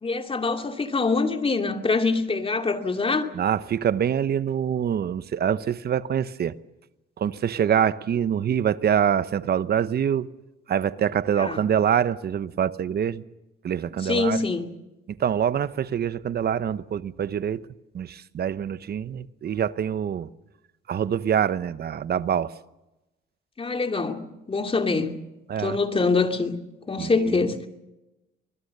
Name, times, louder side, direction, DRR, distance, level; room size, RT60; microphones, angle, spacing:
voice 1, 0.0-3.3 11.4-11.6 14.0-14.7 23.6-25.1 25.6-26.6 26.9-27.6, left 3 dB, 30° left, 2.6 m, -24 dB
voice 2, 3.3-6.5 7.2-10.3 10.7-13.2 13.6-14.4 15.2-17.7 17.9-20.3 20.9-22.5 25.5-25.8 27.0-27.4, right 8 dB, 55° right, 0.9 m, -25 dB
25.0 x 21.0 x 6.8 m
cardioid pair, 90°, 20 cm